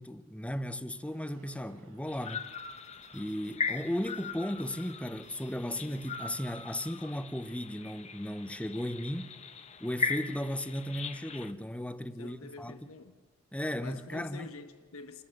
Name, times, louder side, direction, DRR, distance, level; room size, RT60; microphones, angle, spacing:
voice 1, 0.0-2.5 3.1-9.3 9.8-12.9 13.5-14.5, equal, 5° left, 0.7 m, -36 dB
sound 1, 0.9-6.4, right 2 dB, 90° right, 4.3 m, -63 dB
sound 2, 2.1-11.5, left 5 dB, 30° left, 0.9 m, -39 dB
voice 2, 12.2-13.3 13.8-15.2, left 4 dB, 90° left, 1.3 m, -47 dB
28.5 x 12.5 x 7.9 m
head